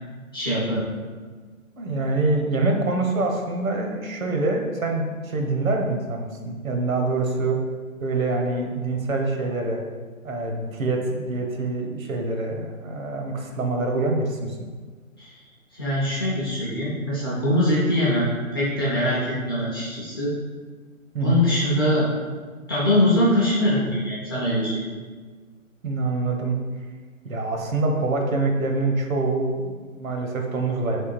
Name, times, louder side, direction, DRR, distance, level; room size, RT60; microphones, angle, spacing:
voice 1, 0.3-0.9 15.2-15.3 15.7-20.3 21.2-22.1 22.7-24.8, left 1 dB, 15° left, -9 dB, 0.6 m, -22 dB
voice 2, 1.8-7.6 8.0-9.8 10.2-14.6 21.1-21.5 25.8-26.5 27.2-31.0, right 3 dB, 75° right, 2 dB, 1.0 m, -25 dB
3.5 x 3.3 x 4.5 m, 1.5 s
hypercardioid pair, 150°, 42 cm